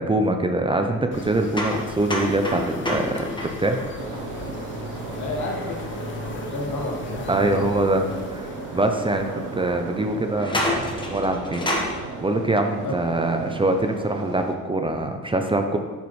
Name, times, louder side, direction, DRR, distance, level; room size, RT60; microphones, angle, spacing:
voice 1, 0.0-3.8 7.3-15.8, right 2 dB, 15° right, 5 dB, 0.5 m, -24 dB
sound 1, 1.1-11.7, left 4 dB, 40° left, 0.8 m, -39 dB
sound 2, 1.5-5.3 8.1-8.2 9.0-9.1 10.3-12.0, left 1 dB, 15° left, 1.2 m, -29 dB
sound 3, 4.0-14.6, right 3 dB, 85° right, 0.8 m, -35 dB
voice 2, 5.1-7.6 12.8-13.0, left 2 dB, 70° left, 0 dB, 1.5 m, -31 dB
7.1 x 6.0 x 3.1 m, 1.4 s
cardioid pair, 90°, 30 cm